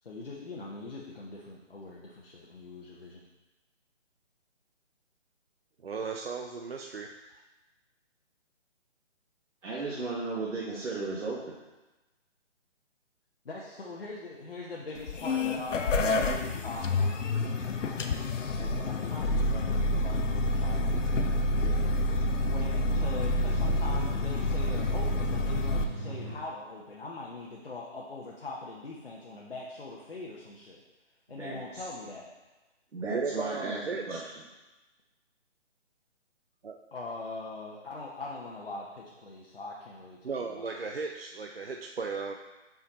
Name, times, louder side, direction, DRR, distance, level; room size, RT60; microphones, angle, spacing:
voice 1, 0.0-3.2 13.4-18.1 18.5-22.1 22.4-30.8 31.3-32.3 36.9-40.7, left 2 dB, 50° left, -4 dB, 1.0 m, -42 dB
voice 2, 5.8-7.2 33.1-34.2 36.6-36.8 40.2-42.4, right 4 dB, 55° right, 2 dB, 0.5 m, -35 dB
voice 3, 9.6-11.6 31.4-31.6 32.9-34.3, right 3 dB, 85° right, -6 dB, 1.6 m, -35 dB
sound 1, 15.0-25.8, left 2 dB, 80° left, 0.8 m, -28 dB
sound 2, 17.6-26.3, equal, 25° left, 0.7 m, -46 dB
5.9 x 5.1 x 4.1 m, 1.1 s
hypercardioid pair, 180°, 37 cm